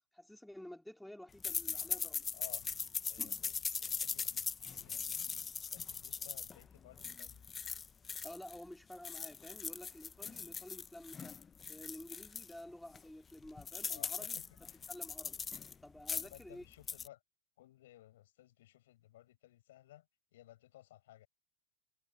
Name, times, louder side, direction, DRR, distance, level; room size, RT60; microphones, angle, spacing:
voice 1, 0.1-2.3 3.2-3.5 8.2-11.4 11.7-14.4 14.9-15.4 15.8-16.6, left 1 dB, ahead, 3.6 m, -51 dB
sound 1, 1.4-8.6 8.9-12.5 12.9-13.0 13.3-15.7 16.0-16.4 16.7-17.1, left 6 dB, 20° left, 1.4 m, -40 dB
voice 2, 2.3-2.7 3.1-5.4 5.7-7.4 13.9-14.9 16.1-17.2 17.6-21.3, left 14 dB, 55° left, 7.5 m, -58 dB
figure-of-eight pair, 90°, 0 cm